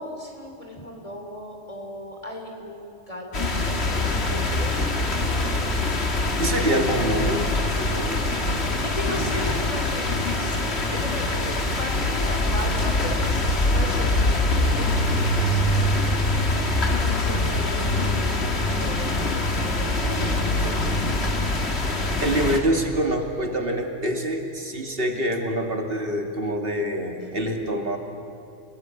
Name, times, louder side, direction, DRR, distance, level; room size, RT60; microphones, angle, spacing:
voice 1, 0.0-5.7 8.8-16.0 16.8-21.5, left 1 dB, 25° left, 1 dB, 3.3 m, -36 dB
sound 1, 3.3-22.6, left 2 dB, 55° left, 2.4 m, -24 dB
voice 2, 6.4-8.2 20.6-20.7 22.2-28.0, right 1 dB, 45° right, 4 dB, 2.6 m, -26 dB
29.5 x 19.5 x 9.2 m, 2.5 s
omnidirectional pair, 1.3 m